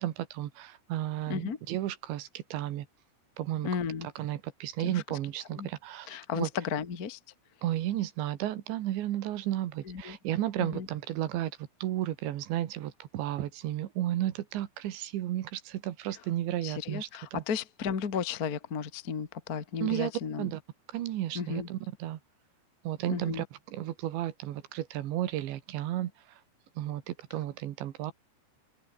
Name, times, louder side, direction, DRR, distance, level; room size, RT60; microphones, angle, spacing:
voice 1, 0.0-2.9 3.4-3.7 4.2-6.5 7.6-17.4 19.8-20.1 20.4-20.6 20.9-22.2 22.8-23.5 23.7-26.4 26.8-28.1, right 13 dB, 80° right, 3.8 m, -33 dB
voice 2, 3.6-4.1 4.8-5.0 5.6-5.7 6.1-7.2 9.8-10.2 10.6-10.9 16.6-20.5 21.3-21.7 23.1-23.4, left 6 dB, 45° left, 1.2 m, -34 dB
omnidirectional pair, 5.1 m